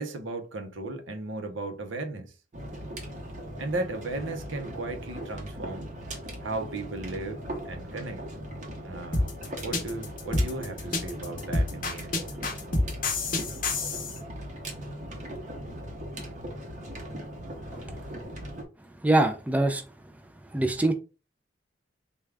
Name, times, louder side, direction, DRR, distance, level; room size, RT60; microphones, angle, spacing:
voice 1, 0.0-2.3 3.6-5.9 6.4-8.2 8.8-12.2, right 2 dB, 80° right, 0.7 m, -36 dB
sound 1, 2.5-18.6, equal, 40° right, 0.7 m, -39 dB
sound 2, 9.1-14.2, left 2 dB, 45° left, 0.7 m, -28 dB
voice 2, 19.0-19.8 20.5-20.9, right 2 dB, 10° right, 0.3 m, -23 dB
3.5 x 2.3 x 3.2 m
head